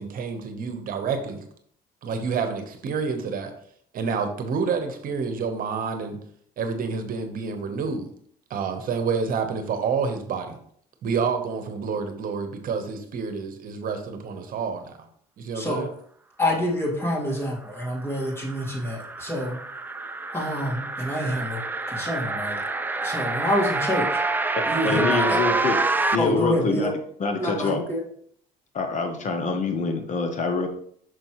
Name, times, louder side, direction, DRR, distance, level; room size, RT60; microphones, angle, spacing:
voice 1, 0.0-1.4 2.0-3.5 3.9-6.2 6.6-8.1 8.5-10.6 11.0-15.0 15.4-15.9, right 5 dB, 55° right, 7 dB, 1.0 m, -28 dB
voice 2, 15.5-15.8 16.4-19.6 20.3-21.6 21.9-22.6 23.0-24.2 24.7-25.4 26.2-26.9 27.4-28.0, left 1 dB, 15° left, -2 dB, 1.9 m, -27 dB
sound 1, 17.8-26.2, right 3 dB, 10° right, 0.4 m, -27 dB
voice 3, 24.5-25.8 26.1-26.9 27.2-27.8 28.7-30.7, left 3 dB, 45° left, 5 dB, 0.9 m, -25 dB
6.3 x 5.2 x 3.1 m, 0.62 s
cardioid pair, 110°, 17 cm